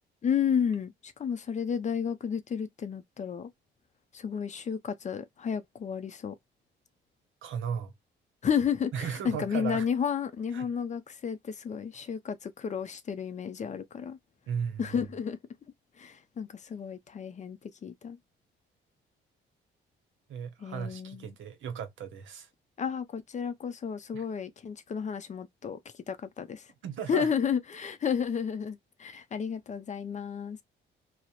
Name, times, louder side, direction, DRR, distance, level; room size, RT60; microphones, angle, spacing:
voice 1, 0.2-3.5 4.1-6.3 8.4-14.2 14.8-15.4 16.0-18.2 20.6-21.3 22.8-25.8 26.1-26.7 27.1-30.6, left 7 dB, 35° left, 0.5 m, -32 dB
voice 2, 7.4-7.9 8.9-9.9 10.5-10.7 14.5-15.0 20.3-22.5 24.1-24.2 26.8-27.3, right 7 dB, 75° right, 0.7 m, -36 dB
2.9 x 2.0 x 2.3 m
cardioid pair, 90°, 20 cm